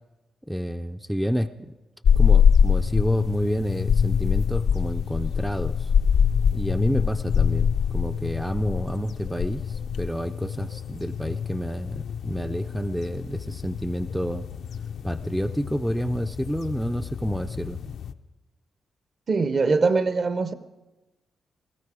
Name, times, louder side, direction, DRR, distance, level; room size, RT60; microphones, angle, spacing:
voice 1, 0.5-1.7 2.2-5.9 6.5-14.5 15.0-17.8, equal, ahead, 0.4 m, -29 dB
sound 1, 2.0-18.1, left 7 dB, 70° left, 0.5 m, -25 dB
voice 2, 19.3-20.5, right 4 dB, 45° right, 0.8 m, -22 dB
18.0 x 15.5 x 4.9 m
cardioid pair, 110°, 0 cm